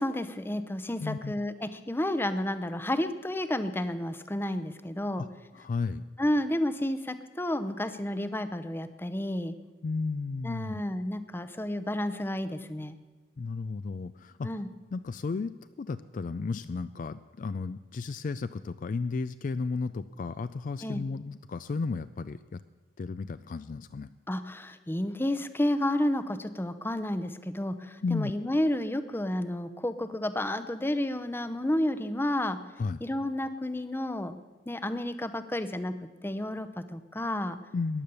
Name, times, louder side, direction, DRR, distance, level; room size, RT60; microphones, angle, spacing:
voice 1, 0.0-5.2 6.2-9.5 10.4-13.0 14.4-14.7 20.8-21.0 24.3-32.6 33.0-34.4 34.7-35.9 36.2-37.6, left 1 dB, 10° left, 11 dB, 0.7 m, -31 dB
voice 2, 1.0-1.4 5.2-5.3 5.5-6.0 9.8-10.8 13.4-14.5 14.9-15.5 15.8-22.6 23.0-24.1 28.0-28.3 32.8-33.0 37.7-38.0, left 4 dB, 45° left, 13 dB, 0.3 m, -33 dB
14.5 x 10.0 x 6.9 m, 1.3 s
head